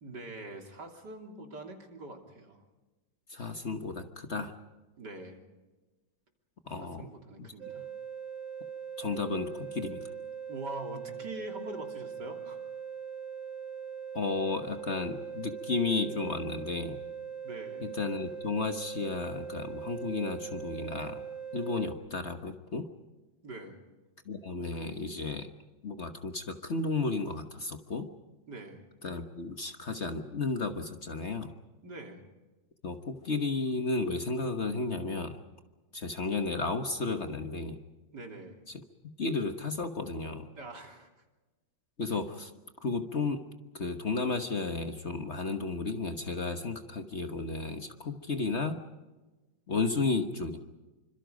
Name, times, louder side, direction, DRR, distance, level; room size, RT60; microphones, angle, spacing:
voice 1, 0.0-2.6 5.0-5.4 6.8-7.8 10.5-12.6 17.4-17.9 23.4-23.8 28.5-28.8 31.8-32.3 38.1-38.7 40.6-41.1, right 2 dB, 65° right, 3 dB, 3.6 m, -44 dB
voice 2, 3.3-4.5 6.7-7.1 7.4-7.5 9.0-10.0 14.1-17.0 17.8-21.2 21.5-22.9 24.2-25.5 25.8-28.1 29.0-31.5 32.8-35.4 35.9-37.8 39.2-40.5 42.0-42.5 42.8-43.4 43.7-48.8 49.7-50.6, left 3 dB, 40° left, 7 dB, 1.4 m, -33 dB
sound 1, 7.6-21.9, right 7 dB, 90° right, 3.7 m, -41 dB
27.0 x 25.5 x 5.2 m, 1.2 s
omnidirectional pair, 2.0 m